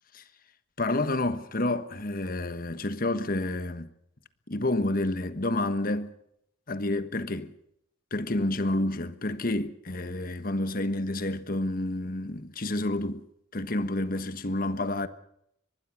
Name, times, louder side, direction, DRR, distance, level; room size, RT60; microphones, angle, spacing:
voice 1, 0.8-3.9 4.5-6.1 6.7-7.5 8.1-13.3 13.5-15.1, left 2 dB, 45° left, 1.4 m, -29 dB
24.0 x 20.5 x 6.2 m
head